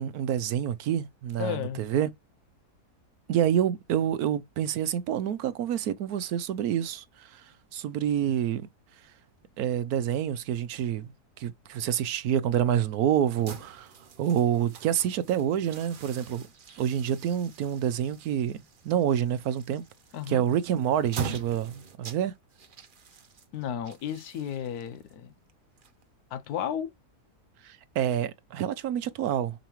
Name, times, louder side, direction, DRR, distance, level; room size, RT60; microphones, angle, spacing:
voice 1, 0.0-2.1 3.3-7.5 7.7-8.7 9.6-11.1 11.4-13.9 14.2-16.5 16.8-19.8 20.3-22.3 27.6-29.6, right 10 dB, 75° right, 1.1 m, -27 dB
voice 2, 1.4-1.8 20.1-20.4 23.5-25.3 26.3-26.9, left 9 dB, 75° left, 1.2 m, -33 dB
sound 1, 13.3-26.4, right 5 dB, 40° right, 0.8 m, -44 dB
6.4 x 5.1 x 3.0 m
omnidirectional pair, 1.7 m